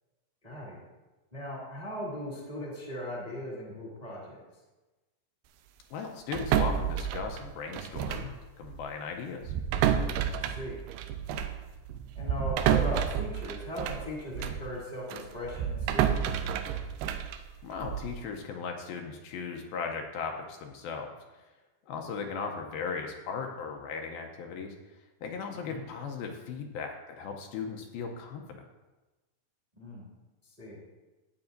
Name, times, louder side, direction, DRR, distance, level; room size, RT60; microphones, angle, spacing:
voice 1, 0.4-0.8 1.3-4.4 10.4-10.8 12.1-16.2 25.5-25.8 29.8-30.1 30.6-30.8, equal, 15° right, -4 dB, 1.4 m, -38 dB
voice 2, 5.9-9.5 17.6-21.1 21.9-24.8 25.2-28.6, left 5 dB, 80° left, 3 dB, 2.4 m, -37 dB
sound 1, 6.3-8.4 8.6-8.8 9.4-14.7 15.1-18.2, right 9 dB, 85° right, 2.6 m, -30 dB
13.0 x 8.9 x 2.6 m, 1.1 s
omnidirectional pair, 4.5 m